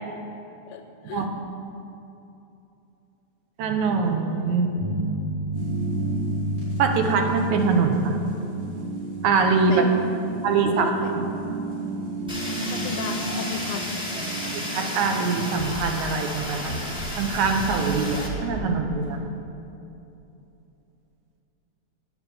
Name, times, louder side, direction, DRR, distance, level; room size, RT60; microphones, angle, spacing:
voice 1, 0.7-1.3 9.7-10.0 10.7-11.2 12.7-13.8, left 7 dB, 80° left, 5 dB, 1.6 m, -35 dB
voice 2, 3.6-4.7 6.8-8.2 9.2-9.7 10.4-10.9 14.5-16.7 17.2-19.2, right 4 dB, 80° right, 4 dB, 2.3 m, -23 dB
sound 1, 4.8-9.0, equal, 25° right, 1.0 m, -30 dB
sound 2, 5.5-19.2, right 2 dB, 60° right, 4.3 m, -34 dB
Fire, 12.3-18.3, left 1 dB, 5° right, 0.4 m, -33 dB
9.1 x 8.7 x 7.0 m, 2.8 s
omnidirectional pair, 3.4 m